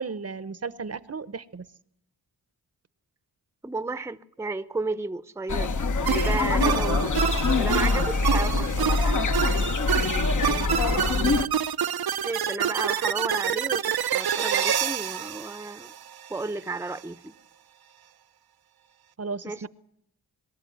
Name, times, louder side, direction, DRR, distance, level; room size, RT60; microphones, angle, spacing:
voice 1, 0.0-1.6 10.9-11.4 19.2-19.7, right 4 dB, 40° right, 0.9 m, -35 dB
voice 2, 3.6-5.8 6.1-7.3 7.6-9.2 12.2-15.9 16.3-17.3 19.4-19.7, right 3 dB, 5° right, 0.8 m, -33 dB
sound 1, 5.5-11.4, left 3 dB, 50° left, 1.1 m, -24 dB
sound 2, 6.1-16.4, right 9 dB, 70° right, 0.8 m, -28 dB
23.5 x 13.0 x 9.3 m
cardioid pair, 60°, 39 cm